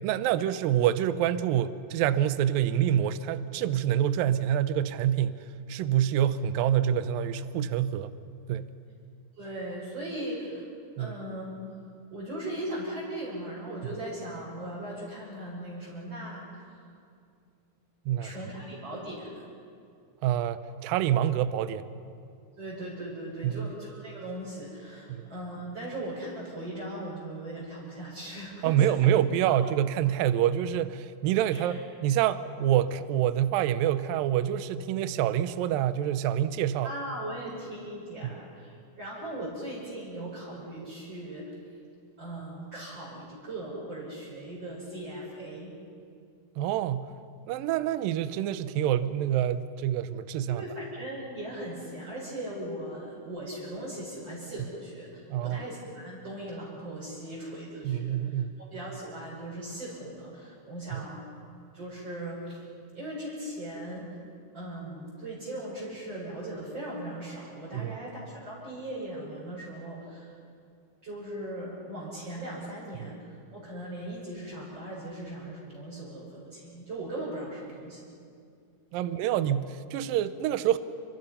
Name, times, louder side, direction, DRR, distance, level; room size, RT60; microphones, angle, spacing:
voice 1, 0.0-5.4 5.7-8.1 8.5-8.7 11.0-11.2 18.1-18.3 20.2-21.9 23.4-23.7 25.1-25.3 28.6-36.9 46.6-47.1 47.4-50.6 55.3-55.6 57.8-58.6 60.9-61.0 67.7-68.0 78.9-80.8, right 11 dB, 75° right, 13 dB, 2.4 m, -26 dB
voice 2, 9.4-10.7 11.0-11.8 12.1-16.8 18.2-19.5 22.6-29.1 29.5-29.6 31.5-31.8 36.8-41.5 42.2-45.7 50.5-58.4 58.7-61.3 61.7-62.7 62.9-64.2 64.5-70.4 71.0-78.0 79.0-79.2, right 1 dB, 25° right, -8 dB, 6.2 m, -39 dB
30.0 x 26.0 x 5.7 m, 2.4 s
omnidirectional pair, 4.5 m